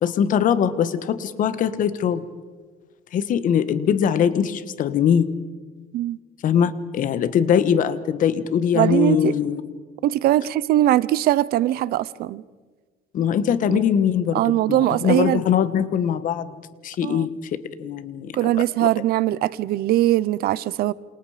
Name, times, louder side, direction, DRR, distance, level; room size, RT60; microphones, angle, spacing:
voice 1, 0.0-2.3 3.1-5.4 6.4-9.7 13.1-14.4 14.7-16.6 16.8-18.4 18.8-18.9, left 8 dB, 50° left, 1.5 m, -22 dB
voice 2, 8.7-9.3 10.0-12.4 13.7-13.8 14.3-15.4 17.0-17.3 18.3-20.9, right 14 dB, 65° right, 0.8 m, -21 dB
28.5 x 28.0 x 5.1 m
cardioid pair, 140°, 17 cm